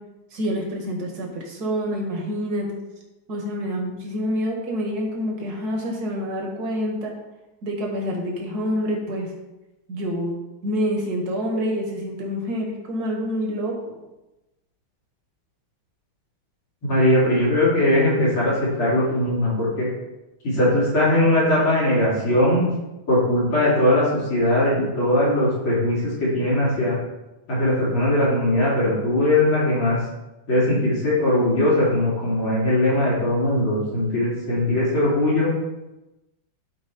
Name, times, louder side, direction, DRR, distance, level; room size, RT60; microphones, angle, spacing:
voice 1, 0.3-2.8 3.3-7.1 7.6-9.3 9.9-10.3 10.6-13.8, equal, 50° right, 0 dB, 2.1 m, -27 dB
voice 2, 16.9-19.9 20.4-22.7 23.1-27.0 27.5-30.0 30.5-35.5, left 1 dB, 85° left, -8 dB, 3.7 m, -20 dB
12.0 x 4.6 x 4.3 m, 1.0 s
omnidirectional pair, 2.2 m